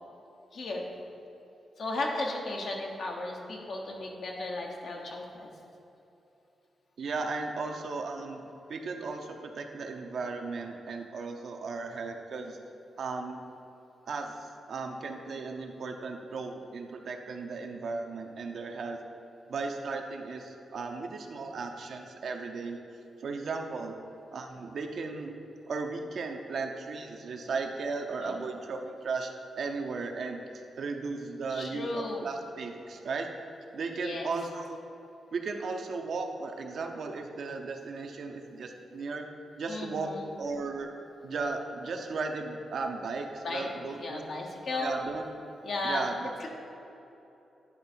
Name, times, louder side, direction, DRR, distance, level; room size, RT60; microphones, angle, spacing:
voice 1, 0.5-0.9 1.8-5.5 7.6-7.7 28.2-28.4 31.5-32.3 33.9-34.3 39.7-40.3 43.4-43.7 44.0-45.0 45.6-46.1 46.4-46.5, left 2 dB, 70° left, 0 dB, 1.0 m, -35 dB
voice 2, 7.0-12.6 13.0-13.4 14.1-19.0 19.5-22.8 23.2-23.9 24.3-25.4 25.7-30.4 30.8-33.3 33.7-34.8 35.3-39.3 39.6-40.1 40.4-40.9 41.2-44.2 44.8-45.2 45.8-46.3, right 4 dB, 70° right, 4 dB, 0.6 m, -36 dB
9.7 x 3.4 x 4.4 m, 2.9 s
supercardioid pair, 50°, 0 cm